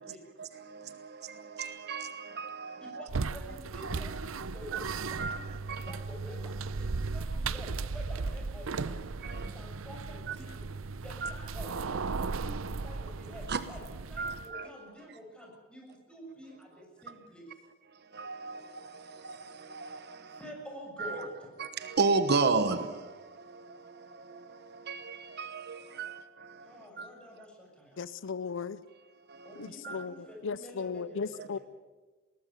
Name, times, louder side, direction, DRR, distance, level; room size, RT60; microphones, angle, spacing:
voice 1, 0.0-3.1 3.8-4.0 4.7-4.8 5.2-5.4 5.7-5.9 9.2-9.5 10.3-10.4 11.2-11.3 13.5-13.6 14.2-14.7 17.1-17.2 18.0-20.4 21.0-21.2 21.6-27.1 29.3-30.0 31.4-31.5, right 4 dB, 55° right, 11 dB, 1.1 m, -34 dB
voice 2, 2.8-10.6 10.9-17.5 20.4-21.5 26.6-28.1 29.4-31.6, equal, 5° left, -1 dB, 6.9 m, -48 dB
sound 1, 3.1-14.5, right 4 dB, 90° right, 0.7 m, -36 dB
voice 3, 28.0-28.8 29.6-30.1 30.4-31.6, left 5 dB, 65° left, 17 dB, 0.6 m, -36 dB
21.0 x 18.5 x 8.0 m, 1.3 s
head